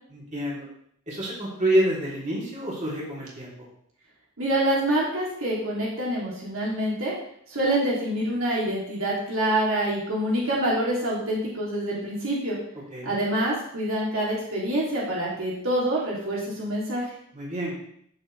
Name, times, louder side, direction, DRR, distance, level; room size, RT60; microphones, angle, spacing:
voice 1, 0.1-0.7 1.1-3.7 12.9-13.2 17.3-17.7, right 1 dB, 35° right, -5 dB, 3.7 m, -27 dB
voice 2, 4.4-7.1 7.5-12.6 13.0-17.1, right 1 dB, 75° right, -5 dB, 3.1 m, -26 dB
14.0 x 7.4 x 3.5 m, 0.70 s
head